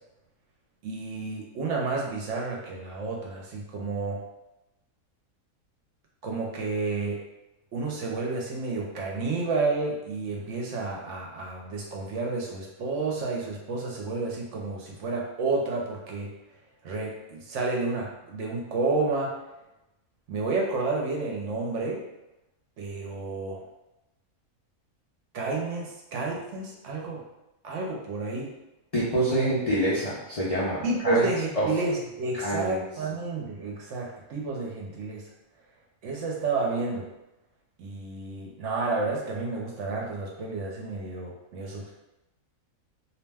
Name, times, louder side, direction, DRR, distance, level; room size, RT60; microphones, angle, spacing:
voice 1, 0.8-4.2 6.2-7.2 7.7-16.3 16.8-19.3 20.3-22.0 22.8-23.6 25.3-27.2 27.6-28.5 30.8-35.3 36.0-37.1 37.8-41.9, right 3 dB, 65° right, -1 dB, 0.8 m, -30 dB
voice 2, 28.9-31.3 31.6-31.7 32.3-32.8, right 1 dB, 60° left, -8 dB, 0.3 m, -26 dB
2.7 x 2.1 x 3.3 m, 0.93 s
omnidirectional pair, 1.5 m